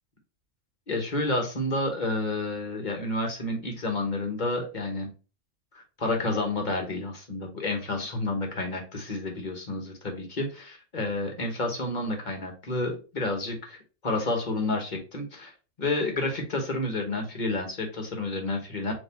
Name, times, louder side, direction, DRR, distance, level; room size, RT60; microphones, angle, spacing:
voice 1, 0.9-5.1 5.7-13.8 14.0-15.5 15.8-18.9, left 2 dB, 40° left, 3 dB, 1.0 m, -30 dB
4.1 x 2.9 x 3.9 m, 0.34 s
omnidirectional pair, 1.4 m